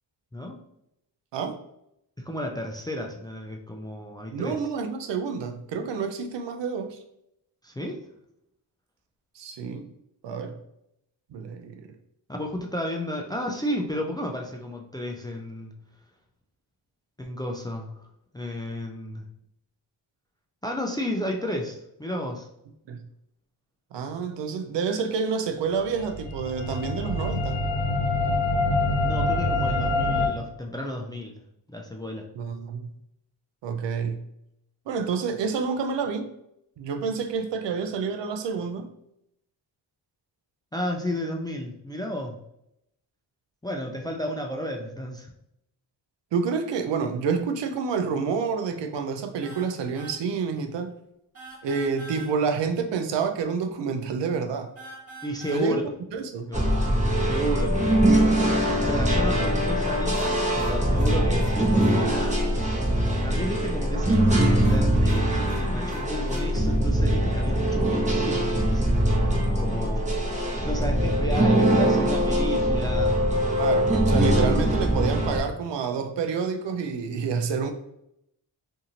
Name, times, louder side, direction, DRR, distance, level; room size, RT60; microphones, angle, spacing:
voice 1, 2.2-4.6 7.6-8.0 12.3-15.7 17.2-18.0 18.3-19.2 20.6-22.5 29.0-31.4 31.7-32.3 40.7-42.4 43.6-45.3 55.2-55.8 56.5-56.7 57.2-57.8 58.8-62.4 63.2-73.1, equal, 10° left, 0.3 m, -33 dB
voice 2, 4.3-7.0 9.4-9.9 10.2-10.6 11.3-11.9 22.9-23.0 23.9-27.7 32.4-32.9 33.6-34.2 34.9-36.3 36.8-38.9 46.3-50.9 51.6-54.7 55.5-55.8 56.1-56.5 73.6-77.7, right 5 dB, 65° right, 0.6 m, -28 dB
sound 1, 25.9-30.3, left 2 dB, 55° left, 1.3 m, -25 dB
sound 2, 49.4-49.7 49.9-50.2 51.3-52.3 54.8-55.7 60.1-62.0 64.6-66.5, equal, 30° right, 1.4 m, -43 dB
sound 3, 56.5-75.4, right 1 dB, 15° right, 1.0 m, -22 dB
2.6 x 2.5 x 2.8 m
cardioid pair, 50°, 47 cm